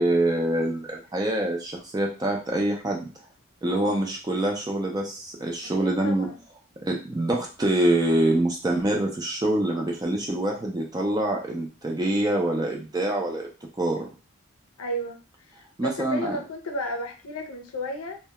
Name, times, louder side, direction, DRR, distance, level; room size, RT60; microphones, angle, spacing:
voice 1, 0.0-3.1 3.6-6.3 6.8-13.5 13.8-14.1 15.8-16.4, right 1 dB, 20° right, 0 dB, 0.4 m, -25 dB
voice 2, 5.8-6.4 14.8-18.2, left 1 dB, 80° left, 3 dB, 0.5 m, -33 dB
2.2 x 2.1 x 2.8 m, 0.33 s
head